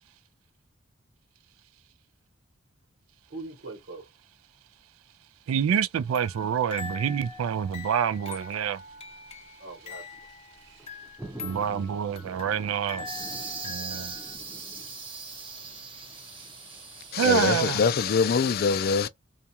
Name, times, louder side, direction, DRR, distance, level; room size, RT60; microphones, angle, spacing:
voice 1, 3.3-4.1 9.4-11.1 13.3-13.8, right 3 dB, 55° right, 1.1 m, -44 dB
voice 2, 5.5-8.8 11.4-13.1 13.6-14.1 17.2-17.8, right 8 dB, 90° right, 0.3 m, -27 dB
sound 1, 6.1-14.4, left 4 dB, 30° left, 0.8 m, -43 dB
sound 2, 7.1-9.4 9.7-18.0, right 2 dB, 5° right, 0.6 m, -49 dB
sound 3, 13.1-18.4, right 4 dB, 25° right, 1.0 m, -40 dB
voice 3, 17.1-19.1, left 5 dB, 50° left, 0.4 m, -23 dB
2.3 x 2.2 x 2.8 m
head